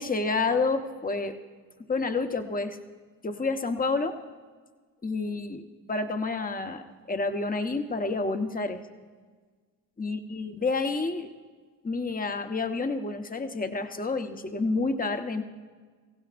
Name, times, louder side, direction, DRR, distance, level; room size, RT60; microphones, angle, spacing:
voice 1, 0.0-1.4 1.9-2.8 3.2-4.2 5.0-8.8 10.0-11.3 11.8-15.4, left 3 dB, 20° left, 6 dB, 1.2 m, -29 dB
25.0 x 16.0 x 2.6 m, 1.5 s
supercardioid pair, 60°, 46 cm